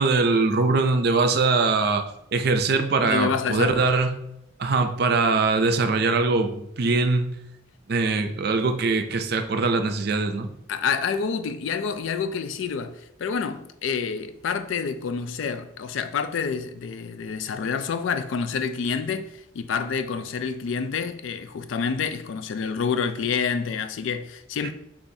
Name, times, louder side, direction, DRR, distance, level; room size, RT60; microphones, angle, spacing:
voice 1, 0.0-2.0 2.3-4.1 4.6-7.3 7.9-10.5, right 3 dB, 50° right, 0.4 m, -22 dB
voice 2, 3.0-3.9 10.7-24.7, left 6 dB, 75° left, 0.3 m, -28 dB
6.9 x 2.5 x 2.7 m
head